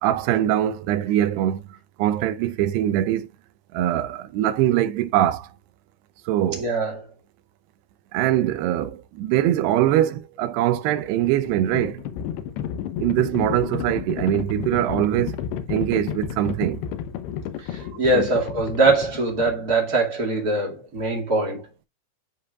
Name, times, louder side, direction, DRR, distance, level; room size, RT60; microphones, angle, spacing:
voice 1, 0.0-3.3 3.7-5.5 6.3-6.7 8.1-12.0 13.0-15.4 15.7-16.8 18.1-18.3, right 12 dB, 80° right, 2.8 m, -22 dB
voice 2, 6.6-7.0 17.6-21.6, right 2 dB, 30° right, 2.2 m, -22 dB
Livestock farm animals working animals, 10.9-19.9, left 9 dB, 85° left, 3.0 m, -32 dB
13.0 x 5.0 x 2.5 m
omnidirectional pair, 4.8 m